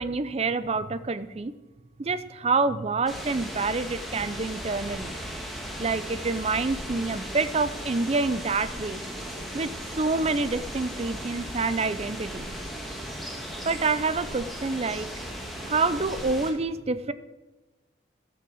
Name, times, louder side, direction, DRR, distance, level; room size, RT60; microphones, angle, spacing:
voice 1, 0.0-1.5 2.0-5.2 5.8-9.0 9.5-12.5 13.6-15.1 15.7-17.1, right 3 dB, 30° right, 13 dB, 0.5 m, -27 dB
sound 1, 3.1-16.5, equal, ahead, 1.5 m, -37 dB
14.0 x 5.9 x 6.3 m, 1.1 s
head